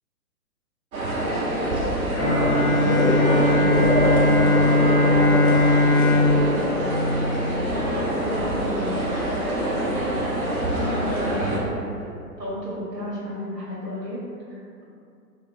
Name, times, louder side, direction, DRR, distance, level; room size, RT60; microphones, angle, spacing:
sound 1, 0.9-11.6, right 1 dB, 60° right, 0.7 m, -26 dB
Bowed string instrument, 2.2-8.0, left 2 dB, 45° left, 0.6 m, -20 dB
voice 1, 2.2-7.0, left 1 dB, 5° right, -20 dB, 0.8 m, -25 dB
voice 2, 7.7-9.2 9.6-12.1 12.4-14.8, equal, 85° right, -6 dB, 1.1 m, -33 dB
3.1 x 2.0 x 3.2 m, 2.4 s
figure-of-eight pair, 125°, 48 cm